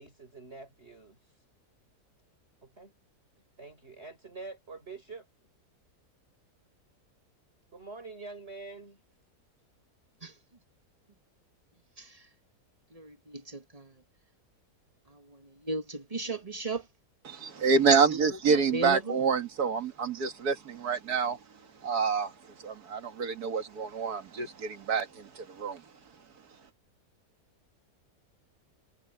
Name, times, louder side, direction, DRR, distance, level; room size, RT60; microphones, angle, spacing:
voice 1, 0.0-1.4 2.6-2.9 3.6-5.3 7.7-9.0, right 3 dB, 40° right, 6.3 m, -46 dB
voice 2, 12.9-13.9 15.1-16.8 17.6-17.7 18.7-19.2, right 2 dB, 20° right, 1.8 m, -36 dB
voice 3, 17.3-21.4 21.8-22.3 22.6-25.8, right 5 dB, 70° right, 2.3 m, -27 dB
omnidirectional pair, 1.7 m